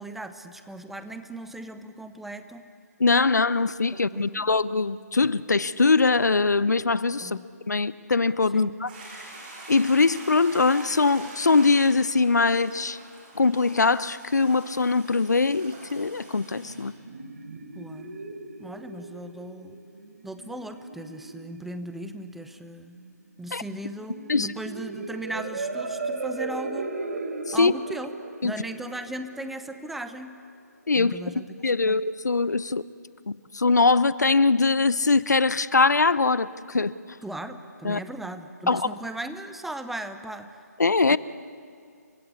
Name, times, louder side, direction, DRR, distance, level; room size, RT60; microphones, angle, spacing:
voice 1, 0.0-2.6 3.9-4.4 7.2-7.5 8.5-8.7 17.8-18.2 18.6-19.8 20.2-23.0 23.4-26.9 27.5-28.1 28.4-30.4 30.9-31.5 31.8-32.0 37.2-40.5 41.1-41.2, right 1 dB, ahead, 9 dB, 0.7 m, -37 dB
voice 2, 3.0-7.4 7.7-8.9 9.7-13.0 13.4-16.9 23.5-23.6 24.3-24.5 27.5-27.7 28.4-28.5 30.9-31.2 31.6-32.9 33.3-36.9 37.8-38.0 38.7-38.9 40.8-41.2, left 4 dB, 75° left, 17 dB, 0.8 m, -22 dB
Toilet flush, 8.9-16.8, right 2 dB, 30° right, 7.2 m, -45 dB
sound 1, 16.2-30.2, right 3 dB, 55° right, 3.3 m, -37 dB
29.5 x 24.0 x 8.4 m, 2.3 s
figure-of-eight pair, 145°, 9 cm